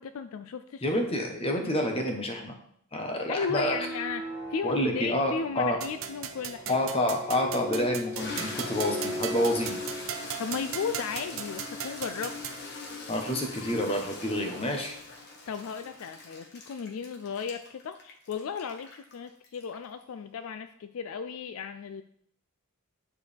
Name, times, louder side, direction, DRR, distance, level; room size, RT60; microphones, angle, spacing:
voice 1, 0.0-0.9 3.3-6.8 10.4-12.4 12.6-12.7 15.5-22.0, left 6 dB, 65° left, 10 dB, 0.3 m, -35 dB
voice 2, 0.8-2.5 2.9-3.8 4.6-5.8 6.7-9.8 13.1-14.9, left 1 dB, 25° left, 3 dB, 1.0 m, -28 dB
sound 1, 3.4-10.3, left 1 dB, 25° right, 1.7 m, -39 dB
sound 2, 5.8-12.6, right 8 dB, 60° right, 0.7 m, -38 dB
Toilet flush, 6.8-6.9 7.5-20.0, left 3 dB, 50° left, 1.2 m, -42 dB
9.3 x 4.6 x 3.4 m, 0.67 s
head